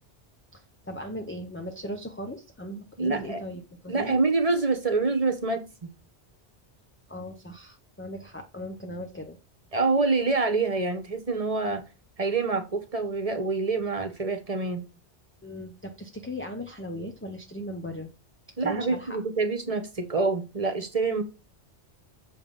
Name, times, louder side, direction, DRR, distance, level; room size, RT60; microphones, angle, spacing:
voice 1, 0.5-4.2 7.1-9.4 15.4-18.1 18.6-19.2, equal, 10° left, 0.7 m, -38 dB
voice 2, 3.0-3.4 3.9-5.7 9.7-11.8 12.2-14.8 18.6-21.2, right 3 dB, 35° right, 1.3 m, -26 dB
7.2 x 5.4 x 4.0 m
omnidirectional pair, 1.1 m